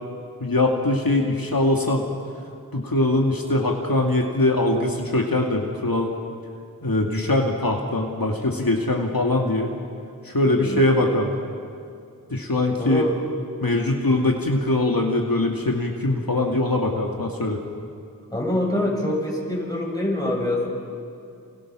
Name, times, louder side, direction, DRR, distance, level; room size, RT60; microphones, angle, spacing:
voice 1, 0.4-2.0 2.7-6.1 6.8-9.7 10.2-11.4 12.3-13.0 13.6-17.6, left 2 dB, 70° left, 1 dB, 2.3 m, -22 dB
voice 2, 10.4-10.8 12.8-13.2 13.7-14.1 18.3-20.7, left 1 dB, 10° left, -2 dB, 7.3 m, -25 dB
29.0 x 27.5 x 6.3 m, 2.4 s
wide cardioid pair, 40°, 36 cm